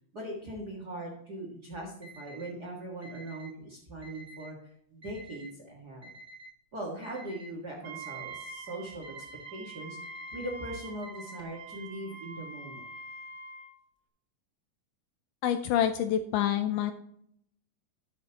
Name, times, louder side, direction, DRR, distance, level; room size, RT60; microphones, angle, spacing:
voice 1, 0.1-4.6 4.9-6.1 6.7-9.1 9.5-10.0 10.3-12.8, right 1 dB, 40° right, -1 dB, 1.5 m, -40 dB
Alarm, 2.0-2.5 3.0-3.5 4.0-4.5 5.0-5.5 6.0-6.5 7.0-7.5 8.0-8.5 9.0-9.5 10.0-10.5 11.0-11.6, equal, 15° right, 2.6 m, -49 dB
Wind instrument woodwind instrument, 7.8-13.8, right 3 dB, 70° right, 1.6 m, -44 dB
voice 2, 15.4-16.9, left 10 dB, 80° left, 9 dB, 2.0 m, -27 dB
12.0 x 7.3 x 2.9 m, 0.71 s
omnidirectional pair, 4.1 m